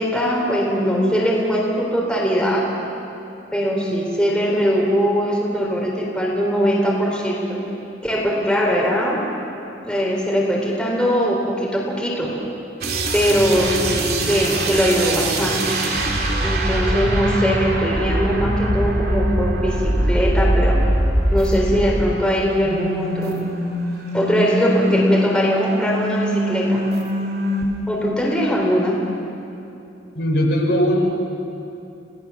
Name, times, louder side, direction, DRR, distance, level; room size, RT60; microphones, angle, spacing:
voice 1, 0.0-2.6 3.5-7.6 8.0-9.2 9.8-12.3 13.1-15.8 16.4-19.8 20.1-20.9 21.3-23.5 24.1-26.8 27.9-29.0, equal, 5° left, -3 dB, 3.7 m, -21 dB
sound 1, 12.8-22.3 22.6-27.6, right 1 dB, 60° right, 2.7 m, -22 dB
voice 2, 30.1-31.0, equal, 70° left, -1 dB, 5.0 m, -19 dB
28.5 x 18.0 x 7.0 m, 2.8 s
head